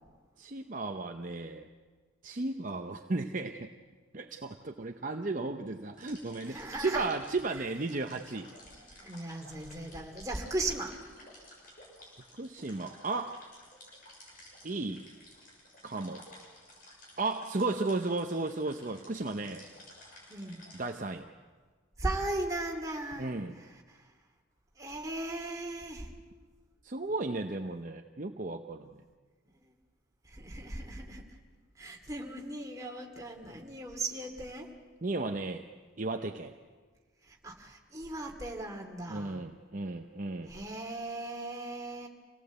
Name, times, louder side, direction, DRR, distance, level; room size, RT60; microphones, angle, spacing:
voice 1, 0.4-1.7 2.2-3.7 4.1-8.5 12.4-13.4 14.6-15.1 15.8-16.3 17.2-19.6 20.7-21.3 23.2-23.6 26.8-28.9 35.0-35.7 36.0-36.5 39.1-40.5, right 3 dB, 40° right, 4 dB, 0.8 m, -34 dB
sound 1, 6.0-20.9, left 1 dB, 45° left, 6.7 m, -54 dB
voice 2, 6.5-7.1 8.8-11.0 20.3-20.7 22.0-24.1 24.8-26.1 29.6-29.7 30.2-31.2 31.8-34.7 37.2-39.4 40.5-42.1, right 2 dB, 15° right, 1 dB, 2.5 m, -38 dB
27.0 x 18.0 x 8.2 m, 1.5 s
head